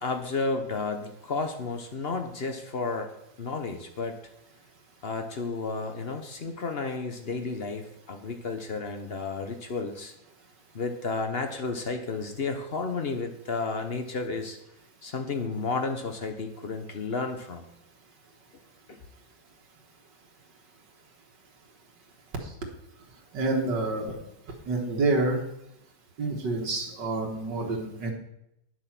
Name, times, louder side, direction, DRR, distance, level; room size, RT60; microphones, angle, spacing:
voice 1, 0.0-3.1 3.4-4.2 5.0-10.1 10.7-14.6 15.0-17.6 18.9-19.0, left 3 dB, 45° left, 6 dB, 0.9 m, -32 dB
voice 2, 23.3-24.2 24.7-25.4 26.2-28.1, right 2 dB, 80° right, 0 dB, 2.1 m, -28 dB
9.8 x 7.3 x 5.9 m, 0.81 s
omnidirectional pair, 1.9 m